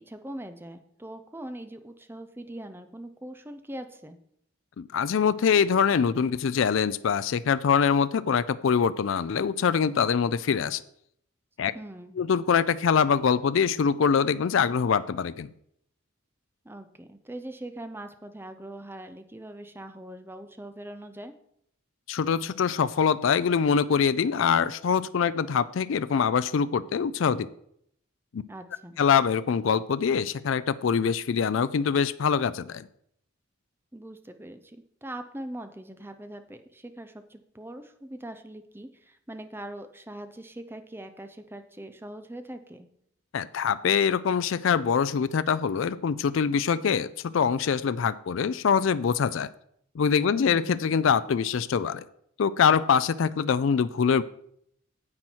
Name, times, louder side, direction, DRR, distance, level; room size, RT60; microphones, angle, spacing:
voice 1, 0.0-4.2 11.7-12.2 16.6-21.3 28.5-29.0 33.9-42.9 50.4-50.8, right 1 dB, 10° right, 8 dB, 0.7 m, -42 dB
voice 2, 4.8-10.8 11.6-11.7 12.2-15.5 22.1-27.5 28.3-28.4 29.0-32.9 43.3-49.5 49.9-52.0 52.4-54.2, left 6 dB, 65° left, 15 dB, 0.4 m, -24 dB
9.6 x 7.7 x 4.5 m, 0.70 s
head